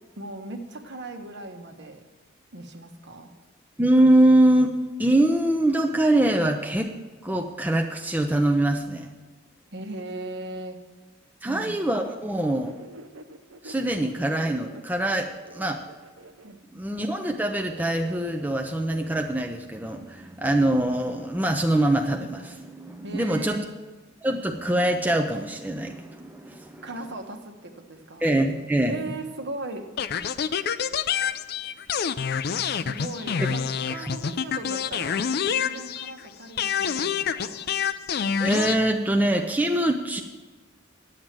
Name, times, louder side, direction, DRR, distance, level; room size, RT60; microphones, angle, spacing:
voice 1, 0.1-2.0 2.5-3.3 9.7-10.8 11.4-11.8 16.4-16.8 23.0-23.7 26.8-28.3 28.9-29.9 32.7-37.7, right 2 dB, 55° right, 5 dB, 1.2 m, -38 dB
voice 2, 3.8-6.9 7.2-9.1 11.4-12.8 13.6-15.9 16.7-23.6 24.2-26.9 28.2-29.1 34.0-34.1 38.4-40.2, right 1 dB, 10° right, 3 dB, 0.5 m, -23 dB
sound 1, 11.7-16.6 16.9-19.2, right 2 dB, 80° right, 0.7 m, -46 dB
sound 2, 30.0-36.2 36.6-38.8, left 7 dB, 50° left, 0.4 m, -27 dB
10.0 x 7.9 x 7.4 m, 1.3 s
head